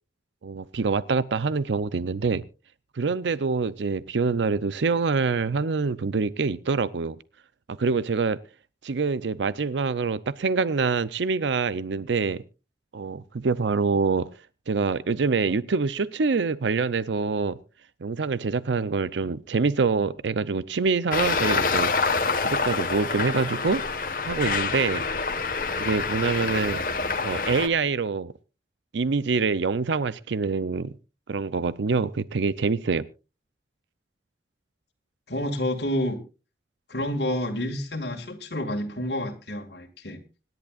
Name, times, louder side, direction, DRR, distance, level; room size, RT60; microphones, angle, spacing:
voice 1, 0.4-2.4 3.0-7.2 7.7-8.4 8.8-12.4 12.9-14.3 14.7-17.6 18.0-21.9 22.4-23.8 24.2-25.0 25.8-26.8 27.2-28.3 28.9-30.9 31.3-33.1, right 4 dB, 90° right, 0.6 m, -25 dB
Traffic noise roadway noise, 21.1-27.7, left 4 dB, 50° left, 1.4 m, -26 dB
voice 2, 35.3-36.2 36.9-40.2, left 1 dB, 70° left, 2.1 m, -29 dB
26.0 x 11.0 x 2.4 m
head